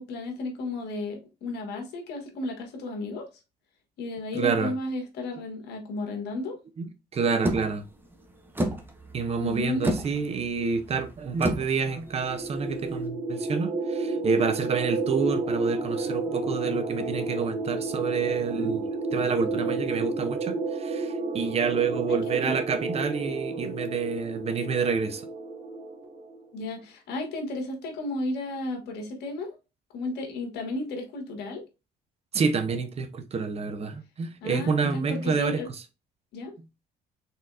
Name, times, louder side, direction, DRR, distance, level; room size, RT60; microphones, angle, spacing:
voice 1, 0.0-3.3 4.0-6.6 9.4-9.8 22.1-22.7 26.5-29.6 29.9-31.6 34.4-35.7 36.3-36.5, left 2 dB, 80° left, 1.5 m, -33 dB
voice 2, 4.3-4.7 6.8-6.9 7.1-7.9 9.1-25.3 32.3-35.6, right 5 dB, 40° right, 0.7 m, -28 dB
sound 1, 7.4-13.0, right 1 dB, 10° right, 0.9 m, -32 dB
sound 2, 12.1-26.4, right 3 dB, 55° right, 1.6 m, -31 dB
4.0 x 4.0 x 2.4 m
cardioid pair, 110°, 17 cm